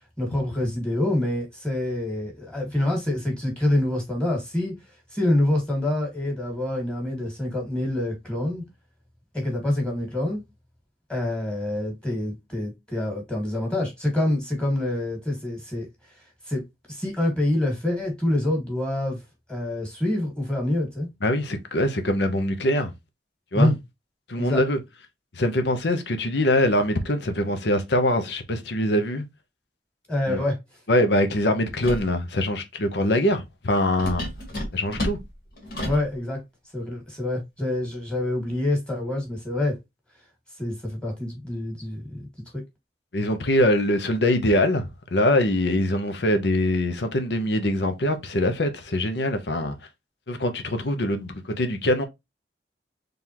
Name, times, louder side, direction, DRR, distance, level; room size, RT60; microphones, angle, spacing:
voice 1, 0.2-4.7 5.1-8.6 9.3-10.4 11.1-15.9 16.5-16.6 16.9-19.2 19.5-21.1 23.5-23.7 24.4-24.6 30.1-30.6 35.8-36.4 36.7-39.8 40.6-42.2 42.5-42.6, left 1 dB, 5° left, 1.7 m, -26 dB
voice 2, 21.2-22.9 23.5-23.7 24.3-24.8 25.4-29.2 30.3-30.4 30.9-34.3 34.7-35.2 43.1-49.7 50.3-52.1, left 1 dB, 75° left, 0.8 m, -23 dB
sound 1, 31.8-32.1 34.0-36.1, left 1 dB, 60° left, 1.9 m, -31 dB
3.9 x 3.4 x 2.9 m
head